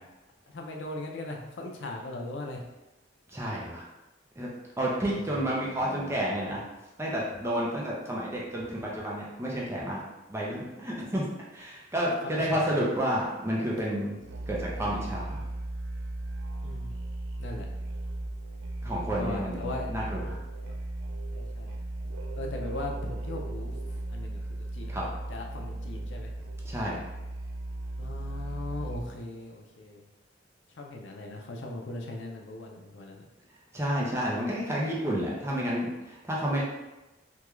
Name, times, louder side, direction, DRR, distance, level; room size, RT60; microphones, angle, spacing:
voice 1, 0.5-2.7 5.2-6.2 12.2-12.8 13.8-13.9 16.6-17.0 17.4-17.7 19.2-19.9 20.6-20.8 21.3-21.8 22.4-23.7 24.1-26.3 28.0-30.1 30.8-33.2, left 2 dB, 80° left, 1 dB, 0.6 m, -39 dB
voice 2, 3.3-3.9 4.4-4.5 4.8-6.6 7.0-10.0 10.3-11.2 11.5-14.1 14.5-15.4 18.8-20.4 24.9-25.0 26.6-27.0 33.7-36.6, equal, 15° right, -5 dB, 0.5 m, -30 dB
Musical instrument, 14.2-29.2, right 1 dB, 85° right, 0.4 m, -36 dB
3.5 x 2.3 x 3.0 m, 1.0 s
head